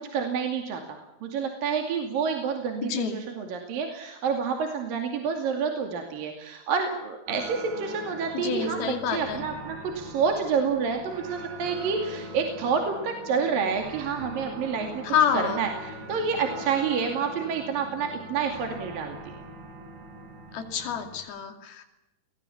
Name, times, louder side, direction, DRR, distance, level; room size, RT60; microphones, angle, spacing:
voice 1, 0.0-15.0 15.3-19.4, right 6 dB, 65° right, 4 dB, 4.1 m, -29 dB
voice 2, 2.8-3.2 8.3-9.4 15.0-15.6 20.5-21.8, left 8 dB, 75° left, 6 dB, 4.4 m, -28 dB
sound 1, 7.3-21.2, right 1 dB, 85° right, 6.4 m, -42 dB
28.5 x 21.0 x 7.2 m, 0.98 s
omnidirectional pair, 4.4 m